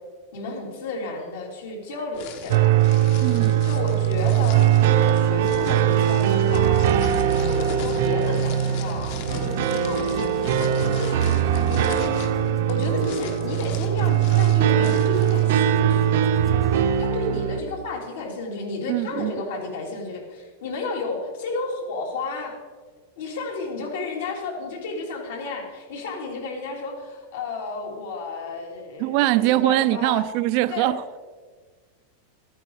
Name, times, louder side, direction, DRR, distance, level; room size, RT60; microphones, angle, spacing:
voice 1, 0.3-2.8 3.6-4.6 4.9-6.9 7.5-12.0 12.7-16.3 16.7-22.6 23.2-30.3 30.7-31.0, left 3 dB, 75° left, 3.2 m, -32 dB
sound 1, 2.1-15.5, left 6 dB, 55° left, 1.2 m, -40 dB
sound 2, 2.5-17.6, right 10 dB, 65° right, 0.7 m, -21 dB
voice 2, 3.2-3.7 18.9-19.3 29.0-31.2, right 17 dB, 45° right, 0.4 m, -22 dB
sound 3, 3.9-17.0, left 3 dB, 10° left, 0.7 m, -42 dB
14.0 x 9.0 x 4.9 m
supercardioid pair, 155°, 0 cm